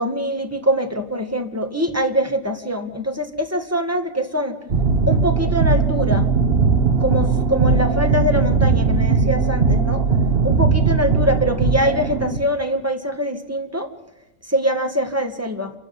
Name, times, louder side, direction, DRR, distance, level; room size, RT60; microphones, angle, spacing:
voice 1, 0.0-4.6 5.1-6.3 7.0-10.1 10.4-13.9 14.5-15.7, equal, 10° right, 6 dB, 2.0 m, -23 dB
sound 1, 4.7-12.4, right 4 dB, 45° right, 1.6 m, -18 dB
28.0 x 13.0 x 9.8 m, 0.93 s
omnidirectional pair, 1.5 m